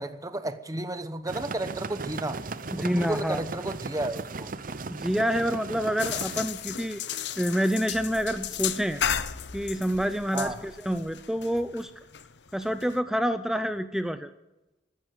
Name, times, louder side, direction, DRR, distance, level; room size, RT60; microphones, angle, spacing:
voice 1, 0.0-2.4 2.8-4.5 10.3-10.6, right 2 dB, 20° right, 11 dB, 1.1 m, -32 dB
sound 1, 1.3-6.5, right 3 dB, 50° right, 0.8 m, -37 dB
voice 2, 2.7-3.4 4.9-7.0 7.4-9.0 9.5-11.9 12.5-14.3, equal, 5° right, 10 dB, 0.6 m, -27 dB
sound 2, 6.0-13.0, left 9 dB, 75° left, 0.8 m, -34 dB
14.0 x 12.5 x 8.0 m, 0.97 s
head